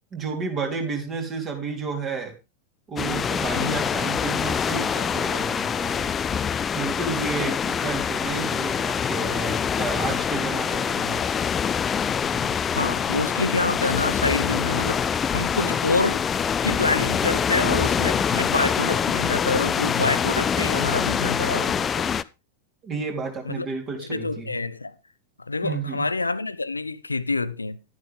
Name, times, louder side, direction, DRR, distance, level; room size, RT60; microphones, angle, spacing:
voice 1, 0.1-2.4 2.9-6.1 6.7-11.2 12.2-12.5 22.8-24.5 25.6-26.0, right 4 dB, 30° right, 3.7 m, -31 dB
sound 1, 3.0-22.2, left 7 dB, 20° left, 0.5 m, -25 dB
voice 2, 12.7-16.3 16.6-22.1 23.4-23.7 24.0-24.9 25.4-27.8, left 3 dB, 80° left, 0.6 m, -27 dB
12.0 x 10.5 x 3.6 m
figure-of-eight pair, 90°, 0 cm